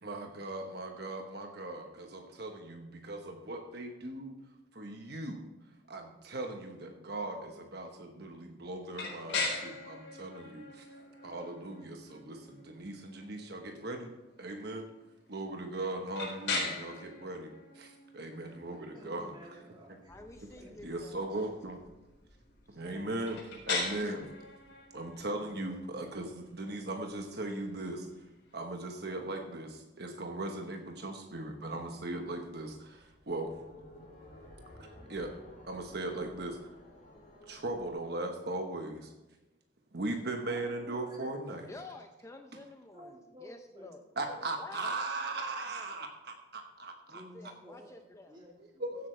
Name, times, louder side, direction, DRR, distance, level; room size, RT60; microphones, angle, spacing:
voice 1, 0.0-4.4 4.7-5.4 5.9-10.9 11.2-14.1 14.4-14.9 15.3-19.3 20.8-21.8 22.8-23.4 23.7-24.3 24.9-28.1 28.5-33.6 34.8-35.3 35.7-36.6 37.5-39.1 39.9-41.7 44.2-47.2 48.8-49.1, right 2 dB, 55° right, 4 dB, 1.2 m, -38 dB
sound 1, 8.9-28.7, left 3 dB, 70° left, 4.2 m, -41 dB
voice 2, 18.9-20.1 20.5-20.9 22.9-23.2 40.5-41.8 42.9-44.4 44.9-45.6 47.1-48.9, equal, 25° right, -2 dB, 2.7 m, -53 dB
sound 2, 20.1-28.9 29.3-30.0 30.3-30.4 30.7-37.9, left 1 dB, 45° left, 4.2 m, -57 dB
voice 3, 20.1-21.3 41.6-44.0 44.5-44.9 47.3-48.4, left 2 dB, 15° left, 5 dB, 0.5 m, -49 dB
15.5 x 8.5 x 3.3 m, 1.1 s
head